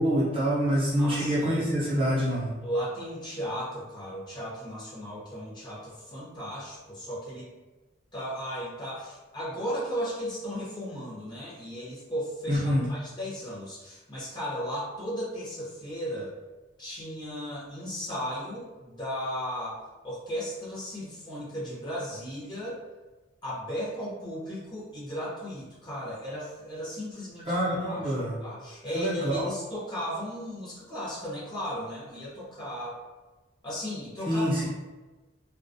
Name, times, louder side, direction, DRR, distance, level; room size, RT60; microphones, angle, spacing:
voice 1, 0.0-2.5 12.5-12.9 27.5-28.4 28.9-29.5 34.3-34.7, equal, 30° right, -8 dB, 0.6 m, -26 dB
voice 2, 1.0-1.7 2.6-7.5 8.1-16.3 16.8-22.8 23.4-27.5 27.9-28.1 28.4-33.0 33.6-34.7, equal, 20° left, -8 dB, 0.8 m, -35 dB
2.2 x 2.1 x 2.6 m, 1.2 s
head